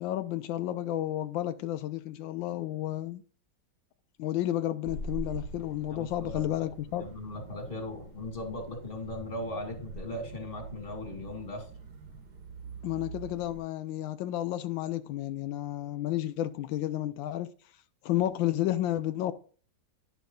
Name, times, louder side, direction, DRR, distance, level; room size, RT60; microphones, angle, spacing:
voice 1, 0.0-3.2 4.2-7.1 12.8-17.5 18.0-19.3, left 13 dB, 85° left, 1.3 m, -31 dB
sound 1, 4.8-13.6, right 3 dB, 60° right, 1.9 m, -44 dB
voice 2, 5.9-6.7 7.0-11.7, left 1 dB, 30° left, 2.3 m, -38 dB
10.5 x 5.7 x 3.8 m
omnidirectional pair, 2.0 m